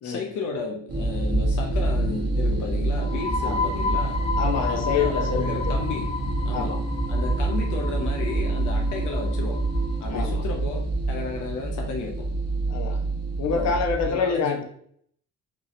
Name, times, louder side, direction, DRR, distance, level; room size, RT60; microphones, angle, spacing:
voice 1, 0.0-4.2 4.7-6.2 6.4-6.8 7.1-9.6 10.0-12.3 13.5-14.6, left 4 dB, 85° left, 1 dB, 0.8 m, -33 dB
sound 1, 0.9-14.1, right 2 dB, 55° right, 1.2 m, -26 dB
sound 2, 2.9-10.4, left 4 dB, 20° left, 0.9 m, -32 dB
voice 2, 4.4-5.7 6.5-6.8 10.1-10.4 12.7-13.0 13.4-14.6, left 5 dB, 60° left, 3 dB, 1.0 m, -26 dB
5.2 x 3.0 x 3.2 m, 0.64 s
cardioid pair, 90°, 30 cm